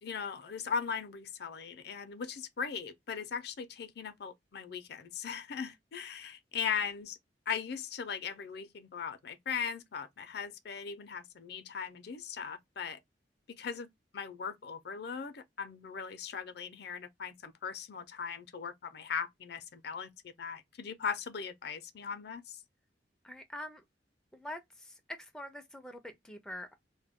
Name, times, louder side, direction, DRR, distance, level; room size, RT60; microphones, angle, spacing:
voice 1, 0.0-7.2 7.5-13.0 13.6-13.9 14.1-22.6, left 6 dB, 65° left, 0.5 m, -39 dB
voice 2, 23.2-23.8 24.3-26.7, left 1 dB, 5° left, 0.4 m, -45 dB
2.2 x 2.1 x 3.4 m
head